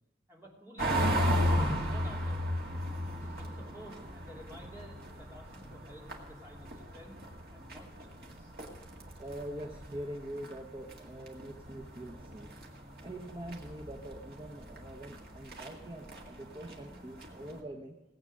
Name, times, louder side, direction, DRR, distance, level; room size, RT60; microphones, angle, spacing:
voice 1, 0.3-2.5 3.1-7.2 7.5-8.5, equal, 15° right, -3 dB, 2.8 m, -52 dB
sound 1, 0.8-17.6, equal, 55° right, 2.0 m, -36 dB
voice 2, 9.2-12.6 13.0-17.9, right 1 dB, 30° right, 1 dB, 0.9 m, -44 dB
18.5 x 8.1 x 6.4 m, 1.1 s
head